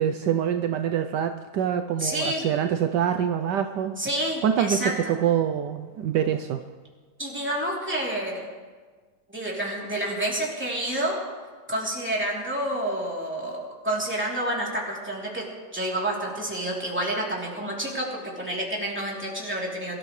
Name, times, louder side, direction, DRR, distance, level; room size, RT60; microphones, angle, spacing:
voice 1, 0.0-3.9 4.4-6.6, right 9 dB, 75° right, 7 dB, 1.2 m, -25 dB
voice 2, 2.0-2.4 4.0-5.2 7.2-8.5 9.3-11.2 11.7-20.0, right 1 dB, 5° right, -4 dB, 3.1 m, -29 dB
23.5 x 13.5 x 3.2 m, 1.5 s
omnidirectional pair, 2.0 m